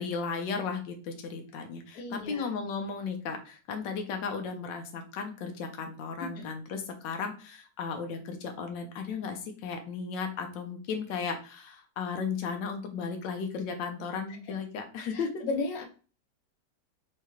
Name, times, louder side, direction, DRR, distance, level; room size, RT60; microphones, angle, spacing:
voice 1, 0.0-15.4, left 5 dB, 85° left, 5 dB, 1.4 m, -35 dB
voice 2, 1.9-2.5 6.2-6.4 14.5-14.6 15.1-15.8, left 3 dB, 60° left, 2 dB, 1.2 m, -35 dB
4.7 x 2.8 x 3.0 m, 0.37 s
omnidirectional pair, 1.9 m